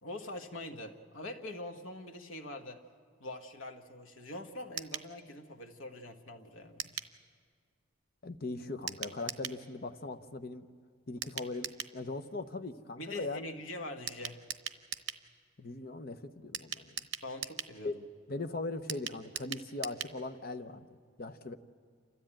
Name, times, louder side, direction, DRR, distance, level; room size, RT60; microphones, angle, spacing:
voice 1, 0.0-2.8 3.2-6.9 13.0-14.4 17.2-18.0, left 1 dB, 80° left, 5 dB, 1.4 m, -44 dB
sound 1, 4.8-5.1 6.8-7.1 8.9-9.6 11.2-12.0 14.1-15.2 16.5-17.8 18.9-20.2 20.5-20.6 20.8-20.9, right 10 dB, 60° right, 0.9 m, -40 dB
voice 2, 8.2-10.7 11.1-13.5 15.6-17.0 17.8-17.9 18.3-20.9 21.2-21.5, left 2 dB, 50° left, 9 dB, 0.8 m, -40 dB
29.0 x 13.0 x 8.8 m, 2.2 s
head